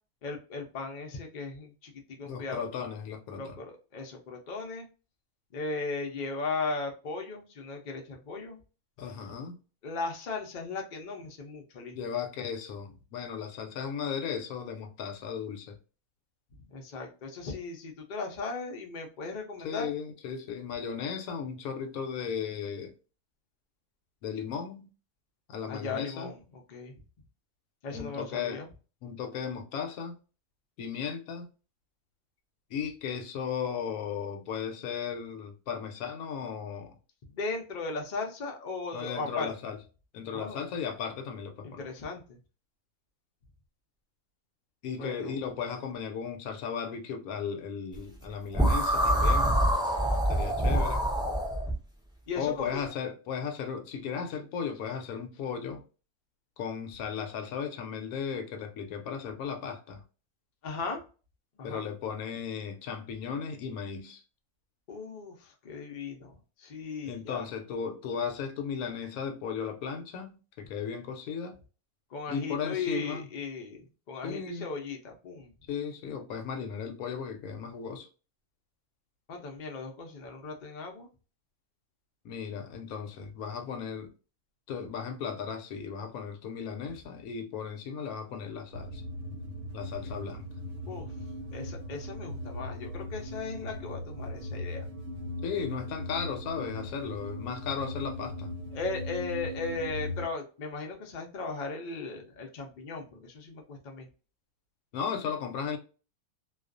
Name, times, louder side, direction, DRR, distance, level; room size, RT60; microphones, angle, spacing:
voice 1, 0.2-2.7 3.3-3.6 3.9-4.8 5.5-8.6 9.8-12.0 16.7-19.9 25.7-27.0 27.8-28.7 37.3-39.5 40.3-40.7 41.6-42.4 45.0-45.4 52.3-52.8 60.6-61.0 61.6-61.8 64.9-67.5 72.1-75.5 79.3-81.1 90.9-91.1 91.5-94.9 98.7-104.1, left 3 dB, 55° left, 0.5 m, -37 dB
voice 2, 2.3-3.5 9.0-9.6 11.9-15.8 19.6-22.9 24.2-24.9 25.5-26.3 27.9-28.6 29.0-30.2 30.8-31.5 32.7-36.9 38.9-39.8 40.1-41.9 44.8-49.6 50.3-51.1 52.4-55.8 56.6-60.0 61.6-64.2 67.0-71.6 72.3-73.3 74.2-74.7 75.7-78.1 82.2-84.1 84.7-89.0 89.7-90.5 95.4-98.5 104.9-105.8, left 7 dB, 80° left, 1.0 m, -36 dB
sound 1, 48.5-51.7, right 1 dB, 5° right, 0.4 m, -25 dB
sound 2, 88.7-100.3, left 1 dB, 65° right, 0.9 m, -39 dB
2.4 x 2.3 x 2.4 m
omnidirectional pair, 1.5 m